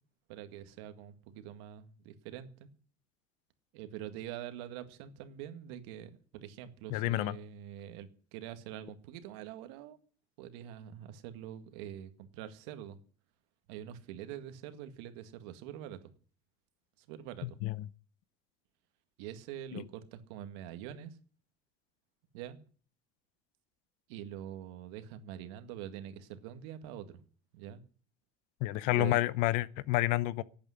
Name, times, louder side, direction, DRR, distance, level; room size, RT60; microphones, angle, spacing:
voice 1, 0.3-2.7 3.7-10.0 10.4-13.0 13.7-16.0 17.0-17.6 19.2-21.2 22.3-22.6 24.1-27.2 27.5-27.8 28.9-29.2, right 10 dB, 90° right, 1.9 m, -45 dB
voice 2, 6.9-7.3 17.4-17.9 19.7-19.8 28.6-30.4, left 17 dB, 65° left, 0.8 m, -30 dB
12.0 x 8.8 x 9.8 m
cardioid pair, 160°, 14 cm